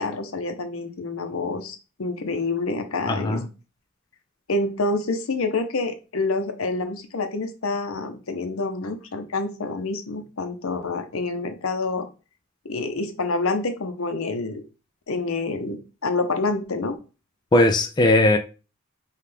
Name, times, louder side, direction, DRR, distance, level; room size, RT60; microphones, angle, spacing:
voice 1, 0.0-3.4 4.5-12.1 12.6-14.6 15.1-17.0, left 3 dB, 75° left, 0.8 m, -27 dB
voice 2, 3.1-3.4 17.5-18.4, left 1 dB, 20° left, 0.3 m, -18 dB
5.6 x 2.4 x 3.4 m
head